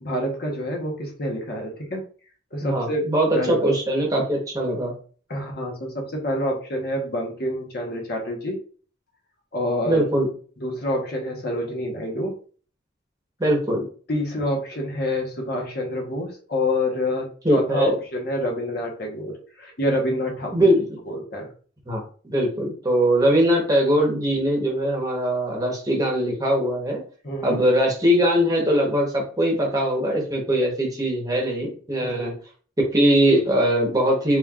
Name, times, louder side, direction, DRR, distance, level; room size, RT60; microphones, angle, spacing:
voice 1, 0.0-2.0 2.5-3.0 3.3-3.6 5.3-8.6 9.5-10.0 10.6-12.3 14.1-20.7 21.1-21.5 27.2-27.6 32.0-32.3, left 1 dB, 50° left, 1 dB, 1.0 m, -27 dB
voice 2, 2.6-4.9 9.9-10.3 13.4-13.9 17.4-18.0 20.5-21.0 21.9-27.0 27.4-32.3 32.9-34.4, equal, 20° right, -1 dB, 1.0 m, -21 dB
4.3 x 3.5 x 2.4 m, 0.42 s
head